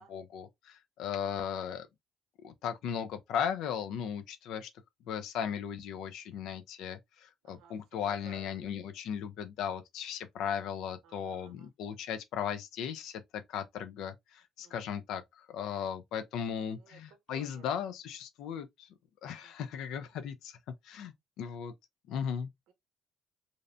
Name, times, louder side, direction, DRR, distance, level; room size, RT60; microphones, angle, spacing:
voice 1, 0.0-1.9 2.4-4.7 5.1-18.9 19.2-20.6 20.8-21.7 22.1-22.5, left 8 dB, 80° left, 0.3 m, -37 dB
voice 2, 7.4-7.8 8.0-8.7 11.0-11.7 14.6-14.9 16.8-17.0 17.3-17.8 19.4-19.7 22.7-22.8, right 6 dB, 85° right, 0.6 m, -57 dB
2.6 x 2.1 x 2.5 m
cardioid pair, 110°, 0 cm